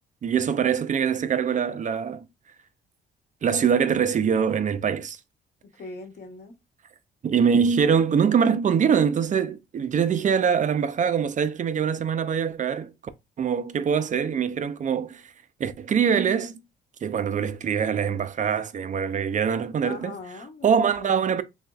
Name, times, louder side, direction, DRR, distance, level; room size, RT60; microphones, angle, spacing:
voice 1, 0.2-2.3 3.4-5.2 7.2-12.9 13.4-15.2 15.6-16.5 17.0-20.1 20.6-21.4, right 7 dB, 40° right, 0.5 m, -23 dB
voice 2, 5.8-6.5 19.8-21.1, left 3 dB, 50° left, 1.0 m, -40 dB
4.0 x 3.0 x 2.2 m
cardioid pair, 90°, 20 cm